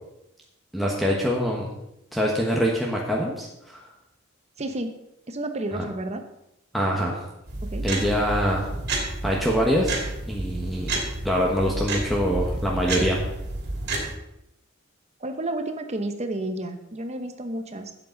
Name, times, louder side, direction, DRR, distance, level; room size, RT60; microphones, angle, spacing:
voice 1, 0.7-1.7 2.1-3.8 5.7-5.8 6.7-7.2 7.8-8.7 9.2-10.0 10.3-10.9 11.2-13.2, equal, ahead, -2 dB, 1.3 m, -24 dB
voice 2, 4.6-5.0 5.3-6.2 7.6-7.9 15.2-17.9, right 1 dB, 30° right, 7 dB, 1.0 m, -31 dB
sound 1, 7.5-14.1, right 2 dB, 55° right, 2.6 m, -30 dB
12.0 x 8.3 x 4.0 m, 0.85 s
head